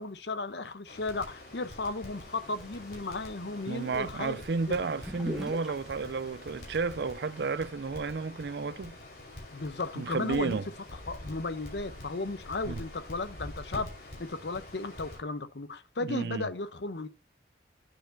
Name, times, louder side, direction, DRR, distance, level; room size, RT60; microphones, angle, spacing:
voice 1, 0.0-4.4 4.7-4.8 9.5-10.6 11.1-13.9 14.2-17.1, left 3 dB, 75° left, 0.9 m, -35 dB
Crackle, 0.8-15.2, left 1 dB, 60° left, 5.0 m, -47 dB
sound 1, 2.1-7.5, left 1 dB, 5° right, 1.6 m, -45 dB
voice 2, 3.7-9.0 10.0-10.6 12.7-12.8 16.0-16.5, right 4 dB, 70° right, 0.4 m, -32 dB
sound 2, 6.7-7.1 7.4-7.5 7.7-8.6 10.6-14.3, equal, 30° left, 2.2 m, -48 dB
9.5 x 4.7 x 4.5 m
head